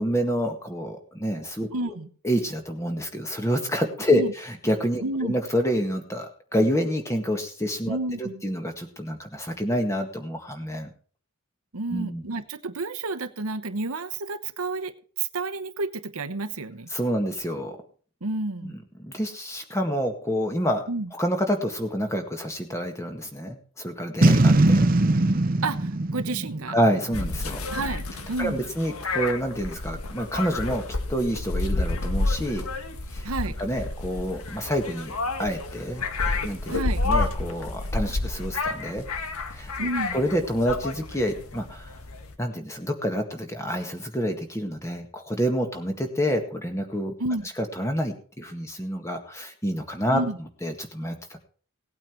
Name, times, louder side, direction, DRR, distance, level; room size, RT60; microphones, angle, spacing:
voice 1, 0.0-1.9 2.2-10.9 11.9-12.2 16.9-17.8 18.6-20.8 21.1-24.9 26.7-27.6 28.4-30.8 31.1-32.7 33.1-33.2 33.6-35.1 35.4-36.0 36.4-36.7 37.0-39.1 39.5-39.7 40.1-42.0 42.4-47.1 47.6-51.4, equal, 15° left, 5 dB, 1.8 m, -28 dB
voice 2, 1.7-2.1 4.1-4.3 5.0-5.3 7.9-8.4 11.7-16.9 18.2-18.7 20.9-21.1 25.6-26.8 27.7-28.6 33.2-33.6 36.7-37.0 39.8-40.2 47.2-47.5 50.1-50.4, right 2 dB, 85° right, 10 dB, 1.0 m, -30 dB
Boom, 24.2-27.5, right 2 dB, 40° right, 0.7 m, -21 dB
sound 1, 27.1-42.3, left 3 dB, 80° left, 1.7 m, -30 dB
18.0 x 8.9 x 4.6 m, 0.43 s
head